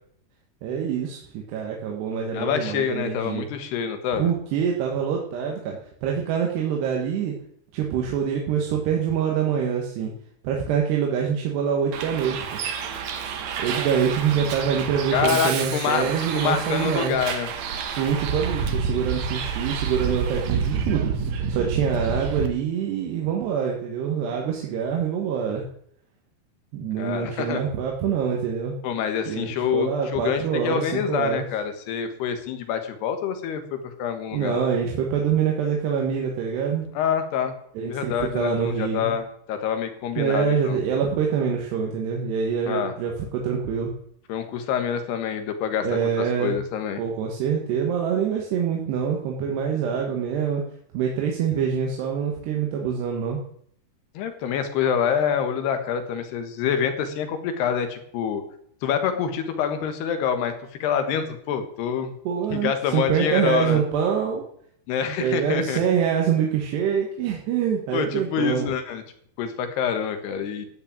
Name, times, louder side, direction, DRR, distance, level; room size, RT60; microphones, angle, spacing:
voice 1, 0.6-3.5 4.1-7.3 7.7-10.1 10.4-12.6 13.6-17.2 17.9-21.1 21.5-25.7 26.7-28.8 29.3-31.5 34.3-36.8 37.7-39.2 40.2-44.0 45.8-46.6 47.0-50.6 50.9-53.4 62.2-64.4 65.2-68.7, right 7 dB, 90° right, 0 dB, 3.6 m, -25 dB
voice 2, 2.3-4.3 15.1-17.5 27.0-27.6 28.8-34.7 36.9-37.5 37.9-40.8 42.7-42.9 44.3-45.9 46.4-47.0 54.1-58.4 58.8-60.5 60.8-62.1 62.5-63.8 64.9-65.8 67.9-69.0 69.4-70.7, left 7 dB, 80° left, 8 dB, 3.6 m, -26 dB
Bus, 11.9-22.5, right 6 dB, 65° right, 1.9 m, -29 dB
15.0 x 6.1 x 8.7 m, 0.66 s
omnidirectional pair, 4.6 m